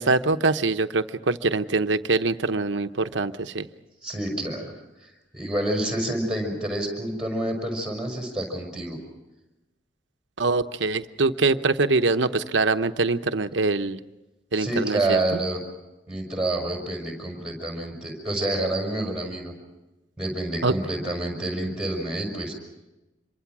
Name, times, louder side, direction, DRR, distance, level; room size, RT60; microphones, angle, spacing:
voice 1, 0.0-3.7 10.4-14.0 14.5-15.2 20.6-20.7, right 3 dB, 80° right, 10 dB, 0.9 m, -23 dB
voice 2, 4.0-9.0 14.6-15.6 16.1-19.5 20.2-22.5, right 1 dB, 5° right, 1 dB, 5.7 m, -28 dB
26.5 x 23.5 x 6.2 m, 1.0 s
head